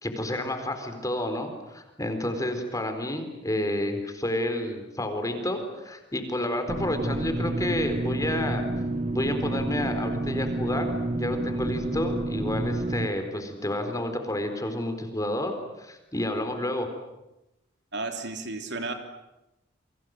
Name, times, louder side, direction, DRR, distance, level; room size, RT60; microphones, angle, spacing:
voice 1, 0.0-8.6 9.1-16.9, left 1 dB, 20° left, 6 dB, 4.2 m, -30 dB
sound 1, 6.7-13.1, right 2 dB, 35° right, 1.4 m, -29 dB
voice 2, 17.9-18.9, right 3 dB, 65° right, 5 dB, 3.2 m, -33 dB
30.0 x 24.0 x 7.8 m, 0.96 s
head